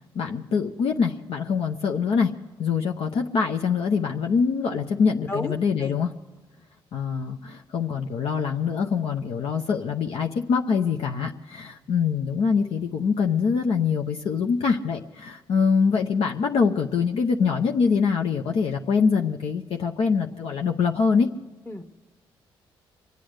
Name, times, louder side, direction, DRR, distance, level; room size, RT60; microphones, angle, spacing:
voice 1, 0.1-2.3 2.6-6.1 6.9-21.3, left 5 dB, 70° left, 2 dB, 0.8 m, -24 dB
voice 2, 5.3-6.0 21.7-21.9, left 2 dB, 25° left, 8 dB, 1.1 m, -32 dB
25.0 x 8.4 x 6.5 m, 1.3 s
supercardioid pair, 60°, 10 cm